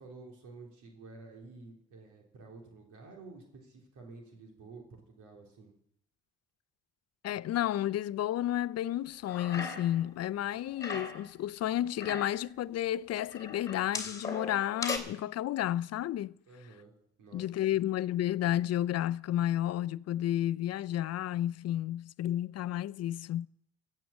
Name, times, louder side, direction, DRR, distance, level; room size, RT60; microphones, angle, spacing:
voice 1, 0.0-5.7 16.5-16.9 17.2-17.9, right 3 dB, 80° right, 3.3 m, -51 dB
voice 2, 7.2-16.3 17.3-23.5, left 12 dB, 55° left, 0.4 m, -31 dB
sound 1, 9.2-10.1 10.3-11.3 11.8-12.4 13.3-15.0, left 4 dB, 10° left, 2.8 m, -38 dB
16.0 x 7.5 x 7.3 m
cardioid pair, 90°, 30 cm